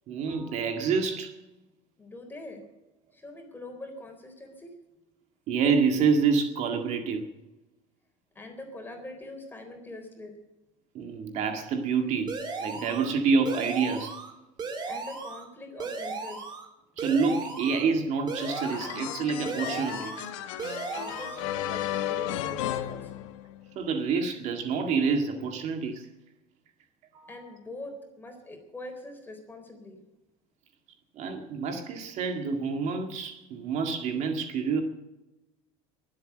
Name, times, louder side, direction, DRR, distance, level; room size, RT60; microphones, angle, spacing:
voice 1, 0.1-1.3 5.5-7.3 10.9-14.2 17.0-20.1 23.8-26.1 27.1-27.3 31.2-34.8, right 5 dB, 50° right, 1.9 m, -27 dB
voice 2, 2.0-2.6 3.1-4.7 8.3-10.3 14.9-16.4 20.9-23.3 27.3-30.0, left 2 dB, 15° left, 3.9 m, -43 dB
sound 1, 12.3-13.1 13.5-14.3 14.6-15.4 15.8-16.7 17.0-17.8 18.3-19.1 19.5-20.3 20.6-21.4, right 4 dB, 30° right, 3.0 m, -36 dB
sound 2, 18.4-23.8, left 12 dB, 85° left, 1.3 m, -34 dB
22.0 x 8.1 x 7.7 m
cardioid pair, 140°, 16 cm